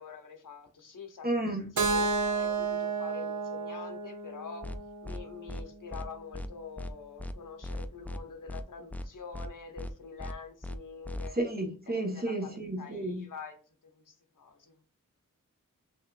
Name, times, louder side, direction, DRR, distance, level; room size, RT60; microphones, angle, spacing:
voice 1, 0.0-1.3 1.9-4.6 5.0-11.3 11.9-13.6 13.8-14.8, left 5 dB, 75° left, 0.9 m, -45 dB
voice 2, 1.2-1.6 11.3-13.3, right 1 dB, 30° right, 1.4 m, -32 dB
Keyboard (musical), 1.8-5.7, right 4 dB, 65° right, 0.8 m, -32 dB
sound 1, 4.6-4.8 5.0-5.2 5.5-5.6 5.9-6.1 6.3-6.5 6.8-6.9 7.2-7.3 7.6-8.2 8.5-8.6 8.9-9.1 9.3-9.5 9.8-9.9 10.2-10.3 10.6-10.8 11.0-11.3, left 1 dB, 5° left, 0.3 m, -38 dB
5.6 x 2.8 x 2.5 m
wide cardioid pair, 70°, 33 cm